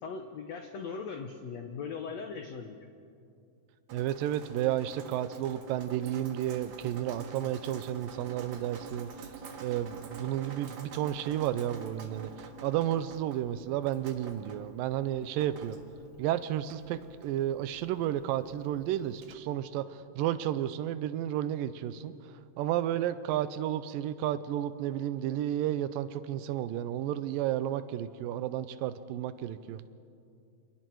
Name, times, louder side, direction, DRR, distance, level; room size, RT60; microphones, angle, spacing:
voice 1, 0.0-2.9, left 5 dB, 85° left, 5 dB, 1.5 m, -39 dB
Drip, 3.9-19.3, right 6 dB, 55° right, 2.6 m, -48 dB
voice 2, 3.9-9.3 9.6-15.8 16.2-22.1 22.6-29.8, right 11 dB, 80° right, 13 dB, 2.1 m, -32 dB
28.5 x 27.5 x 4.7 m, 2.5 s
omnidirectional pair, 4.6 m